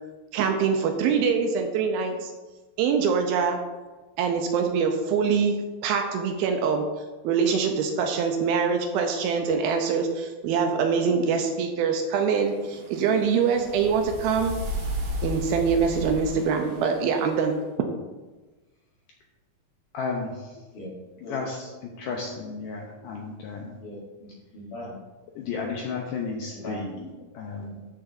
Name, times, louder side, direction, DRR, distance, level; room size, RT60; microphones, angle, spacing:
voice 1, 0.3-2.3 2.8-3.7 4.2-5.6 5.8-6.9 7.2-14.6 15.2-17.6, right 6 dB, 80° right, 4 dB, 2.5 m, -24 dB
sound 1, 12.2-17.5, left 1 dB, 60° right, 1.4 m, -35 dB
voice 2, 19.9-20.6 21.3-23.8 25.4-27.8, left 4 dB, 75° left, 0 dB, 2.1 m, -33 dB
voice 3, 21.2-21.7 22.0-22.2 23.8-24.9 26.5-26.8 27.6-27.9, equal, 55° left, -6 dB, 4.1 m, -40 dB
13.5 x 6.8 x 2.7 m, 1.2 s
omnidirectional pair, 4.6 m